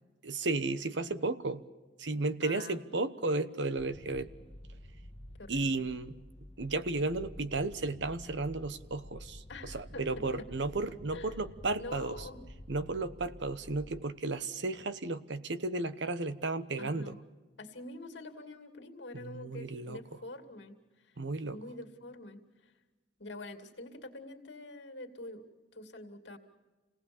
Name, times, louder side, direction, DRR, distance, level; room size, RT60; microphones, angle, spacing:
voice 1, 0.2-1.6 2.0-4.3 5.5-6.2 6.6-12.3 12.7-17.2 19.1-20.0 21.2-21.6, right 3 dB, 70° right, 12 dB, 1.0 m, -34 dB
voice 2, 2.4-2.8 5.4-5.8 9.5-10.0 11.1-11.4 11.8-12.4 16.8-17.2 17.6-20.8 21.0-21.1 21.5-22.7 23.2-25.4 25.7-26.4, left 2 dB, 65° left, 5 dB, 2.6 m, -46 dB
sound 1, 3.8-14.1, equal, 35° left, 1.6 m, -50 dB
28.0 x 18.0 x 7.1 m, 1.3 s
head